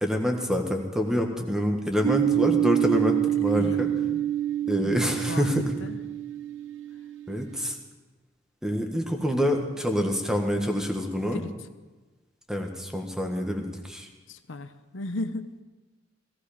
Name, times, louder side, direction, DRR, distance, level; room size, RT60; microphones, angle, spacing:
voice 1, 0.0-3.9 4.7-5.7 7.3-7.8 8.6-11.4 12.5-14.1, equal, 5° right, 2 dB, 1.7 m, -26 dB
sound 1, 2.0-7.6, right 11 dB, 85° right, 1.0 m, -27 dB
voice 2, 3.5-4.2 4.6-6.0 11.3-11.5 14.3-15.6, left 2 dB, 80° left, 9 dB, 0.9 m, -36 dB
17.5 x 16.0 x 5.1 m, 1.2 s
head